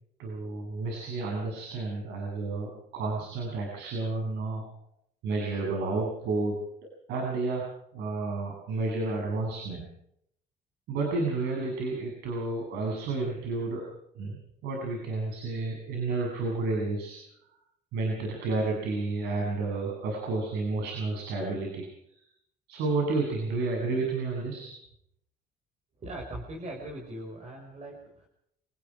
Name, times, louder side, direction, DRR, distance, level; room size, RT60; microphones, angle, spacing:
voice 1, 0.2-4.6 5.2-6.6 7.1-9.9 10.9-13.8 14.1-17.2 17.9-22.2 22.7-24.7, right 3 dB, 85° right, 0 dB, 7.9 m, -31 dB
voice 2, 26.0-28.3, right 1 dB, 40° right, 2 dB, 5.8 m, -40 dB
28.0 x 19.5 x 5.0 m, 0.73 s
cardioid pair, 110°, 17 cm